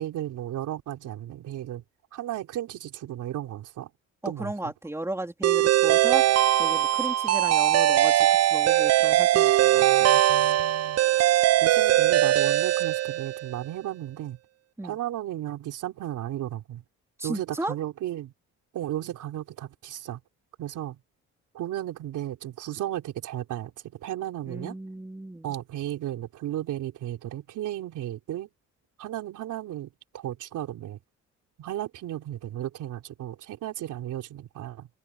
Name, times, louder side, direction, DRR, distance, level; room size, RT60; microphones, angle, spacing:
voice 1, 0.0-1.8 2.1-3.9 4.3-4.7 9.7-11.0 11.6-14.4 14.8-16.8 17.2-18.3 18.7-20.2 20.6-21.0 21.5-23.7 24.0-24.8 25.4-28.5 29.0-31.0 31.6-34.9, right 12 dB, 80° right, 3.8 m, -34 dB
voice 2, 4.2-6.2 6.6-10.1 14.8-15.0 17.2-17.7 24.5-25.6, right 1 dB, 10° right, 3.5 m, -35 dB
sound 1, 5.4-13.6, right 13 dB, 55° right, 0.6 m, -21 dB
cardioid pair, 90°, 30 cm